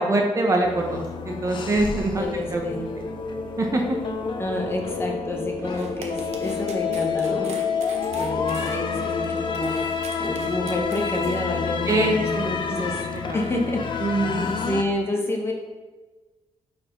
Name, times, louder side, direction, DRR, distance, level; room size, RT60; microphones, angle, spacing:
voice 1, 0.0-2.2 2.5-2.6 3.6-3.8 11.9-13.4 14.0-14.7, right 2 dB, 30° right, 2 dB, 0.7 m, -24 dB
sound 1, 0.6-14.8, left 6 dB, 45° left, 0.5 m, -29 dB
sound 2, 1.1-12.8, left 2 dB, 85° left, 1.8 m, -35 dB
voice 2, 2.2-2.9 4.4-7.6 8.2-13.0 13.3-14.1 14.7-15.5, left 1 dB, 20° left, 1 dB, 0.9 m, -29 dB
sound 3, 5.6-11.4, right 5 dB, 75° right, 0.8 m, -42 dB
4.8 x 4.3 x 5.0 m, 1.3 s
cardioid pair, 135°, 11 cm